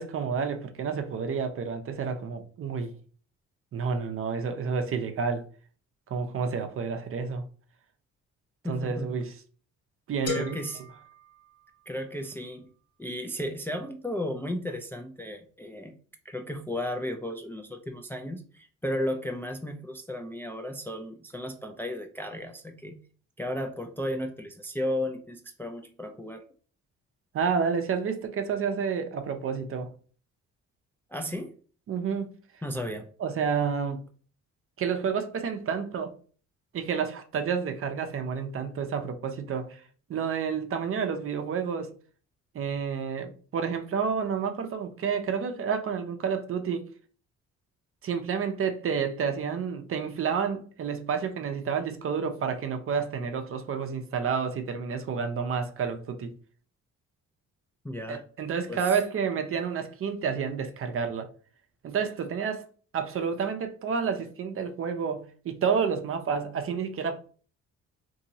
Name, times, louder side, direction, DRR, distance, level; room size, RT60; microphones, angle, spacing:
voice 1, 0.0-2.9 3.7-5.4 6.1-7.4 8.6-9.3 10.1-10.6 27.3-29.9 31.9-32.3 33.2-34.0 34.8-36.1 36.7-39.8 40.1-41.9 42.5-46.9 48.0-56.3 58.1-61.3 61.8-62.6 62.9-67.2, right 6 dB, 45° right, 0.5 m, -30 dB
voice 2, 8.6-9.2 10.2-10.8 11.9-12.7 13.0-16.0 16.2-23.0 23.4-26.4 31.1-31.5 32.6-33.1 57.8-58.2 58.7-59.0, left 1 dB, 10° left, 0.3 m, -34 dB
sound 1, 10.3-12.1, left 6 dB, 55° left, 1.1 m, -38 dB
2.9 x 2.7 x 2.7 m
cardioid pair, 90°, 30 cm